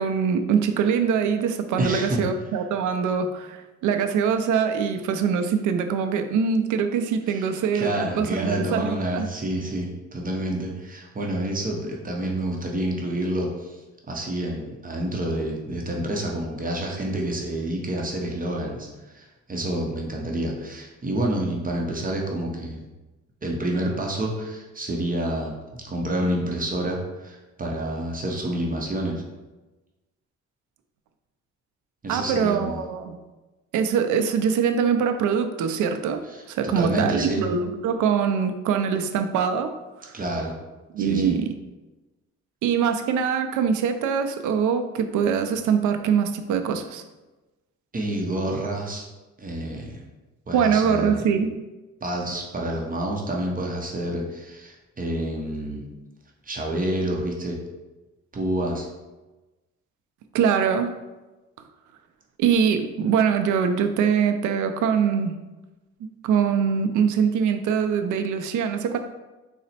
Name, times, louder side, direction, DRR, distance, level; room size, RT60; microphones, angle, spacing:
voice 1, 0.0-3.6 3.8-9.3 32.1-33.2 33.7-36.2 36.5-39.7 40.0-40.1 40.9-41.5 42.6-47.0 50.5-51.6 60.3-60.9 62.4-65.4 66.0-69.0, right 7 dB, 80° right, 8 dB, 0.5 m, -23 dB
voice 2, 1.8-2.2 7.3-7.5 7.7-13.8 14.1-22.8 23.4-29.2 32.0-32.8 36.3-37.4 40.1-40.5 41.0-41.3 47.9-49.1 49.4-50.0 50.5-51.2 52.0-55.9 56.4-57.6 58.3-58.9, right 1 dB, 30° right, -1 dB, 0.7 m, -28 dB
4.0 x 2.1 x 4.1 m, 1.1 s
cardioid pair, 90°, 30 cm